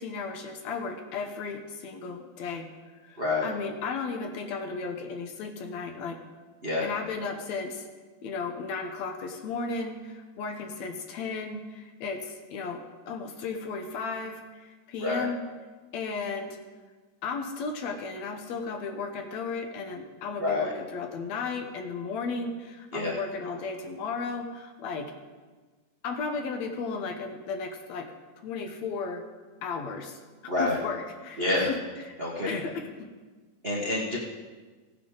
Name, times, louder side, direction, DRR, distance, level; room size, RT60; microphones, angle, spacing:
voice 1, 0.0-2.7 3.0-6.2 6.8-7.9 8.2-15.4 15.9-16.6 17.2-25.1 26.0-28.1 28.4-29.2 29.6-30.2 30.6-31.8 32.1-32.2 32.5-33.1, left 4 dB, 70° left, 4 dB, 2.1 m, -35 dB
voice 2, 3.2-3.5 6.6-6.9 15.0-15.3 20.4-20.7 22.9-23.1 30.5-30.8 31.4-31.7 32.2-32.6 33.6-34.2, left 2 dB, 40° right, -5 dB, 0.8 m, -27 dB
16.5 x 9.6 x 3.9 m, 1.4 s
omnidirectional pair, 3.5 m